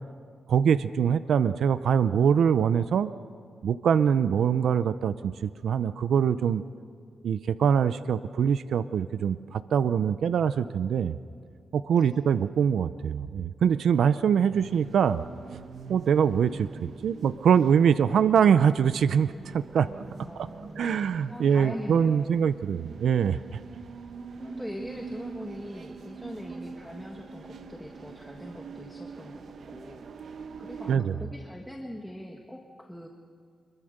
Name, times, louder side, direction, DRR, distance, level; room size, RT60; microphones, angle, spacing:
voice 1, 0.5-3.1 3.6-6.6 7.2-11.1 11.7-15.2 15.5-15.6 15.9-19.9 20.8-23.6 30.9-31.2, right 7 dB, 85° right, 13 dB, 0.5 m, -24 dB
sound 1, 14.5-31.0, right 5 dB, 70° right, 1.1 m, -44 dB
voice 2, 20.2-22.4 24.4-33.1, equal, 5° left, 1 dB, 1.6 m, -42 dB
25.5 x 22.5 x 6.6 m, 2.1 s
wide cardioid pair, 110°, 0 cm